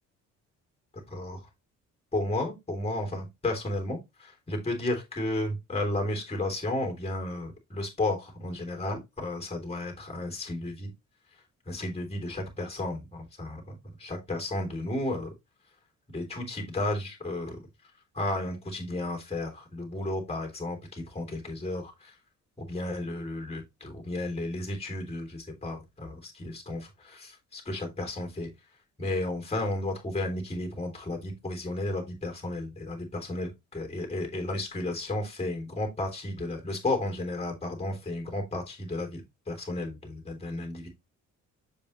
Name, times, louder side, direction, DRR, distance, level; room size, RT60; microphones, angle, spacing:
voice 1, 2.1-10.9 11.6-13.7 14.0-15.3 16.1-17.6 18.1-22.2 22.6-28.5 29.0-40.9, left 2 dB, 20° left, 3.4 m, -33 dB
7.1 x 5.5 x 3.2 m
cardioid pair, 90°, 30 cm